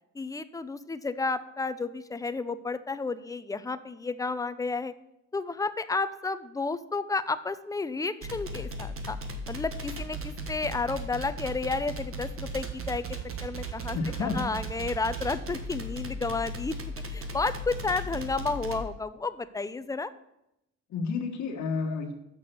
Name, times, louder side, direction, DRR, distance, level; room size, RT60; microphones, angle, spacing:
voice 1, 0.1-4.9 5.3-9.2 9.5-13.0 13.4-16.7 17.1-20.1, left 3 dB, 10° left, 13 dB, 0.5 m, -32 dB
sound 1, 8.2-18.8, right 2 dB, 45° right, 1.4 m, -36 dB
voice 2, 13.9-14.5 20.9-22.1, left 5 dB, 65° left, 1 dB, 1.3 m, -30 dB
6.9 x 5.9 x 6.7 m, 0.85 s
cardioid pair, 90°, 30 cm